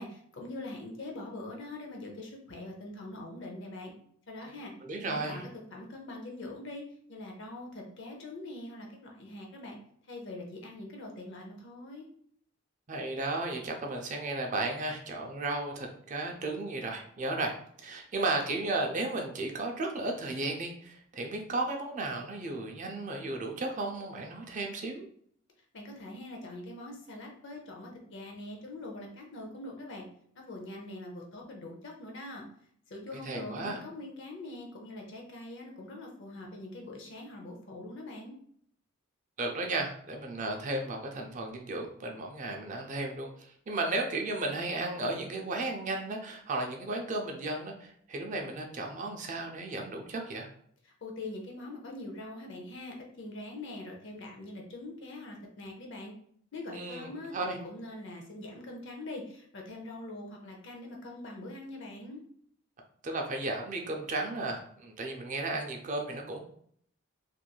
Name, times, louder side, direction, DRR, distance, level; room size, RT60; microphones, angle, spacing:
voice 1, 0.0-3.9 4.3-4.7 5.0-6.8 7.1-9.8 10.1-12.1 25.7-30.0 30.3-32.4 32.9-38.3 51.0-56.1 56.5-62.2, left 2 dB, 55° left, 1 dB, 0.6 m, -43 dB
voice 2, 4.5-5.4 12.9-17.5 17.8-25.1 33.1-33.8 39.4-50.5 56.7-57.6 63.0-66.4, right 2 dB, 35° right, 2 dB, 0.4 m, -34 dB
3.0 x 2.5 x 2.2 m, 0.64 s
head